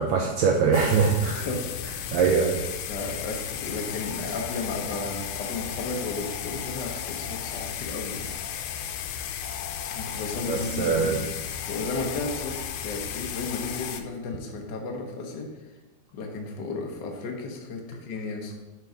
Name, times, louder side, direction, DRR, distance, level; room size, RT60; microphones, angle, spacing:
voice 1, 0.0-1.5 2.1-2.6 10.5-11.2, right 5 dB, 75° right, 1 dB, 1.7 m, -22 dB
sound 1, 0.7-14.0, left 9 dB, 90° left, 2.1 m, -34 dB
voice 2, 2.9-8.3 9.9-11.2 11.6-15.5 16.1-18.5, left 3 dB, 65° left, 1 dB, 1.1 m, -34 dB
7.9 x 4.6 x 5.1 m, 1.1 s
omnidirectional pair, 3.5 m